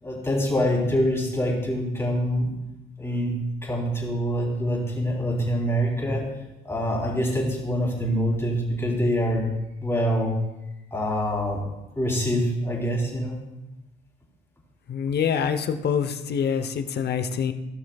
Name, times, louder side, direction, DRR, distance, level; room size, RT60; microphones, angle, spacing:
voice 1, 0.0-2.5 3.0-3.3 3.6-6.3 6.6-9.5 9.8-10.3 10.9-11.6 11.9-13.4, equal, 15° left, -3 dB, 3.3 m, -25 dB
voice 2, 14.9-17.5, left 7 dB, 55° left, 9 dB, 0.8 m, -25 dB
16.5 x 6.3 x 2.4 m, 0.96 s
cardioid pair, 90°, 20 cm